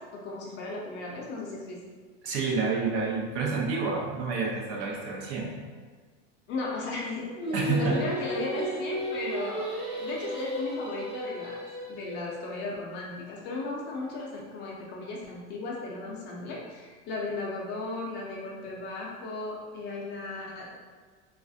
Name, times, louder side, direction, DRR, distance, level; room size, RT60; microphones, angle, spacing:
voice 1, 0.0-1.8 6.5-11.6 11.9-20.8, left 2 dB, 35° left, -3 dB, 0.5 m, -36 dB
voice 2, 2.2-5.5 7.5-8.0, right 4 dB, 60° right, -1 dB, 0.7 m, -29 dB
Singing, 7.4-12.5, equal, 20° right, 0.5 m, -34 dB
3.2 x 2.4 x 2.6 m, 1.5 s
cardioid pair, 165°, 32 cm